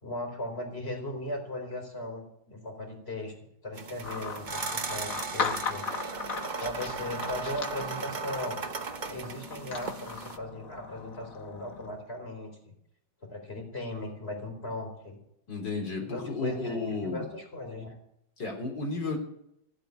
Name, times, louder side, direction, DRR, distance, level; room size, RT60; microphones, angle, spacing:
voice 1, 0.0-3.3 3.6-5.9 6.6-8.6 9.1-12.7 13.2-15.2 16.0-18.0, left 1 dB, 30° left, 3 dB, 4.3 m, -38 dB
sound 1, 3.7-10.4, right 4 dB, 55° right, 0.5 m, -37 dB
sound 2, 4.0-11.9, left 5 dB, 50° left, 1.6 m, -38 dB
voice 2, 15.5-17.3 18.4-19.2, left 3 dB, 65° left, 2 dB, 4.4 m, -33 dB
16.5 x 8.3 x 9.6 m, 0.78 s
omnidirectional pair, 2.1 m